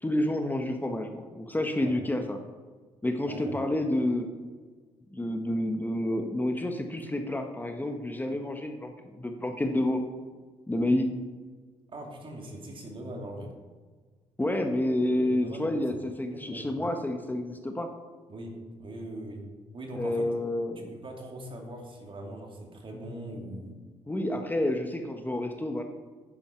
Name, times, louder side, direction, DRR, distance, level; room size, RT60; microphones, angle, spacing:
voice 1, 0.0-2.4 3.0-4.3 5.1-10.0 10.7-11.1 14.4-17.9 19.9-20.9 24.1-25.8, left 1 dB, 15° left, 5 dB, 1.2 m, -29 dB
voice 2, 3.2-3.6 11.9-13.5 15.3-15.6 15.9-16.0 16.3-16.8 18.3-19.4 19.7-20.3 20.8-23.8, right 1 dB, 45° right, 1 dB, 2.8 m, -41 dB
10.5 x 8.7 x 4.5 m, 1.4 s
supercardioid pair, 65°, 12 cm